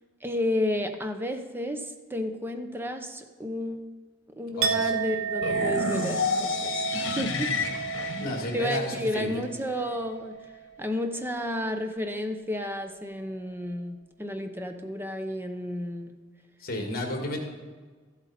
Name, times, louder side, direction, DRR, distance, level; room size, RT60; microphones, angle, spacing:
voice 1, 0.2-3.8 4.4-7.5 8.0-8.2 8.5-10.4 10.8-16.1, left 1 dB, 10° right, 6 dB, 0.7 m, -32 dB
voice 2, 4.5-4.9 7.7-7.8 8.2-9.3 16.6-17.4, left 1 dB, 50° left, 3 dB, 1.9 m, -32 dB
Chink clink, 4.6-10.5 10.8-11.2, right 7 dB, 85° right, 0.7 m, -33 dB
sound 1, 5.4-9.4, left 4 dB, 70° left, 1.4 m, -30 dB
13.5 x 8.2 x 4.2 m, 1.4 s
head